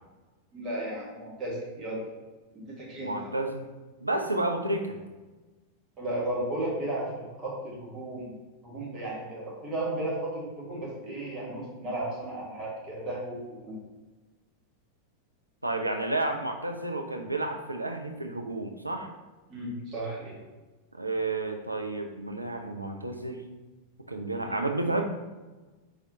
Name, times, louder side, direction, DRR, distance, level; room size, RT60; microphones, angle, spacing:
voice 1, 0.5-2.0 2.5-3.3 6.0-8.3 8.6-13.8 19.5-20.4 24.4-24.6, right 1 dB, 30° right, -4 dB, 1.5 m, -34 dB
voice 2, 3.0-3.7 4.0-5.0 15.6-19.1 20.9-23.4 24.1-25.0, right 2 dB, 85° right, 3 dB, 0.4 m, -31 dB
4.6 x 3.5 x 2.7 m, 1.2 s
figure-of-eight pair, 90°, 0 cm